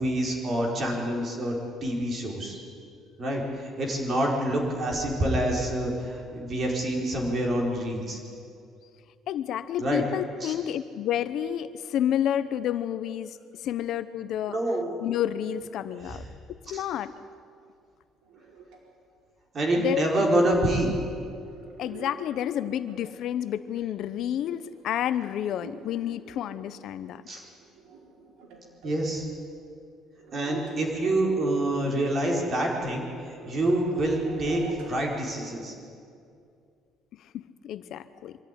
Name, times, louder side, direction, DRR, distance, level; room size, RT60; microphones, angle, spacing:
voice 1, 0.0-1.6 1.8-2.6 3.2-8.2 9.8-10.0 10.4-10.5 14.5-15.0 16.0-16.3 16.7-16.8 19.5-21.0 27.3-27.4 28.8-29.3 30.3-35.7, right 1 dB, 35° right, -1 dB, 4.6 m, -27 dB
voice 2, 9.3-13.4 13.6-14.5 15.0-16.2 16.7-17.1 19.8-20.3 21.8-27.2 37.3-38.4, left 10 dB, 60° left, 13 dB, 0.8 m, -30 dB
sound 1, 18.2-18.8 20.5-23.2 23.7-29.0 29.4-29.5 30.2-30.8 31.0-31.3 32.1-32.2 32.4-35.1 35.4-35.5 36.3-36.4, right 5 dB, 85° right, 4.8 m, -45 dB
24.0 x 13.5 x 9.9 m, 2.4 s
cardioid pair, 150°, 0 cm